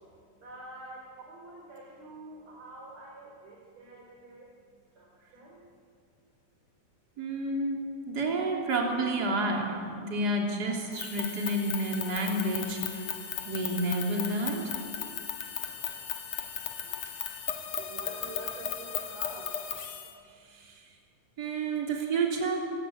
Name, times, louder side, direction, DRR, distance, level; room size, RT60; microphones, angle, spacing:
voice 1, 0.4-4.5 4.9-5.6 16.8-19.5 20.5-20.7, right 2 dB, 60° right, -2 dB, 4.7 m, -48 dB
voice 2, 7.2-13.1 13.5-14.6 20.5-20.9 21.4-22.6, right 2 dB, 30° right, 0 dB, 3.7 m, -30 dB
sound 1, 10.9-20.1, left 8 dB, 60° left, 3.0 m, -36 dB
25.5 x 20.0 x 8.8 m, 2.3 s
omnidirectional pair, 3.5 m